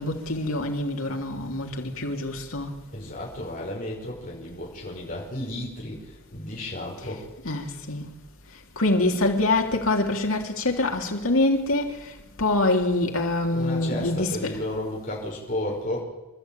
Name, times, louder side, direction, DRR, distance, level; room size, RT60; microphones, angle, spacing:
voice 1, 0.0-2.8 7.4-8.1 8.8-14.5, left 2 dB, 80° left, 3.2 m, -25 dB
voice 2, 2.9-7.2 13.5-16.0, left 1 dB, 40° left, 5.9 m, -33 dB
28.0 x 13.5 x 9.0 m
head